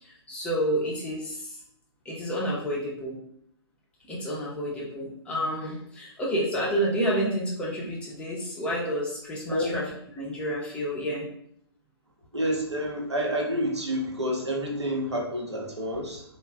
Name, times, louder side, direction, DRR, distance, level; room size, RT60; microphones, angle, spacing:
voice 1, 0.0-1.5 2.1-3.2 4.1-9.8 10.1-11.2, equal, 10° left, -5 dB, 0.5 m, -29 dB
voice 2, 9.5-9.8 12.3-16.2, equal, 80° right, 1 dB, 0.8 m, -29 dB
3.1 x 2.0 x 3.3 m, 0.68 s
figure-of-eight pair, 125°, 14 cm